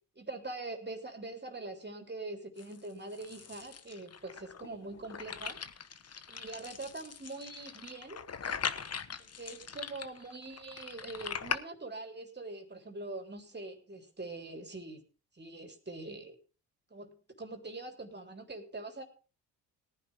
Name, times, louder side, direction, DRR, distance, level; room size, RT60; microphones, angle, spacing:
voice 1, 0.2-5.6 6.3-8.2 9.2-15.0 15.3-16.4 16.9-17.1 17.4-19.0, right 2 dB, 25° right, 5 dB, 3.5 m, -43 dB
sound 1, 2.6-11.6, left 6 dB, 40° left, 1.2 m, -41 dB
18.5 x 10.0 x 3.6 m, 0.36 s
supercardioid pair, 60°, 39 cm